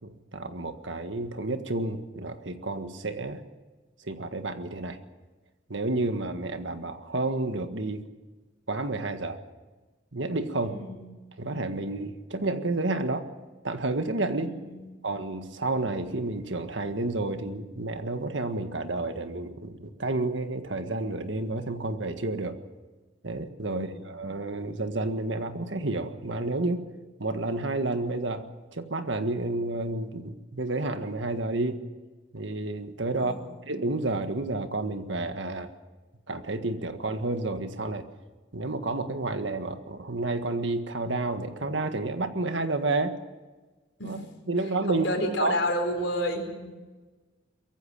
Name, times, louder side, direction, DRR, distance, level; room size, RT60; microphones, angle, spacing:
voice 1, 0.0-3.4 4.0-5.0 5.7-8.1 8.7-9.4 10.1-10.7 11.4-13.2 13.6-14.6 15.0-22.6 23.2-26.8 27.2-31.8 32.3-33.3 33.6-35.7 36.3-38.0 38.5-43.2 44.0-44.2 44.5-45.1 45.4-45.5, right 2 dB, 70° right, 8 dB, 1.7 m, -30 dB
voice 2, 10.6-11.2 14.4-15.0 23.7-24.1 33.2-33.5 44.0-44.2 44.9-46.7, left 1 dB, 75° left, 4 dB, 4.4 m, -31 dB
23.0 x 15.0 x 7.6 m, 1.3 s
head